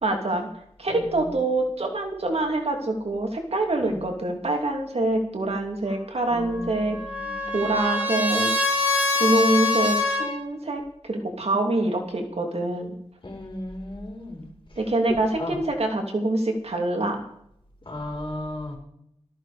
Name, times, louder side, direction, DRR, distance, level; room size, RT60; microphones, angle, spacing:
voice 1, 0.0-0.5 0.8-7.0 7.5-8.5 9.2-12.9 14.8-17.3, right 2 dB, 65° right, 3 dB, 2.8 m, -25 dB
voice 2, 0.9-1.3 3.8-4.0 6.3-7.6 13.2-14.5 15.1-15.6 17.9-18.8, left 1 dB, 45° left, 0 dB, 5.3 m, -35 dB
Trumpet, 6.4-10.3, left 3 dB, 15° right, 6.2 m, -25 dB
14.0 x 14.0 x 5.0 m, 0.72 s
wide cardioid pair, 70°, 12 cm